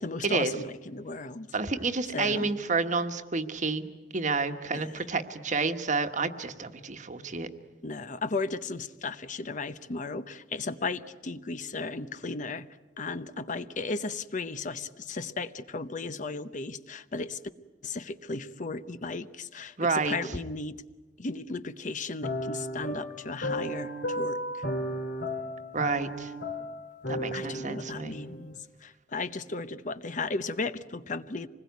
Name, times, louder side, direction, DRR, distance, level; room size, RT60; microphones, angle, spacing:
voice 1, 0.0-1.5 2.1-2.5 4.7-5.1 7.8-12.7 13.0-17.4 17.8-20.8 21.2-24.6 27.3-31.5, left 3 dB, 45° left, 12 dB, 0.8 m, -35 dB
voice 2, 1.5-7.5 19.8-20.2 25.7-26.3 27.1-28.1, right 4 dB, 45° right, 8 dB, 1.4 m, -29 dB
sound 1, 22.2-28.6, equal, 75° left, 2.3 m, -34 dB
26.0 x 20.5 x 9.4 m, 1.2 s
head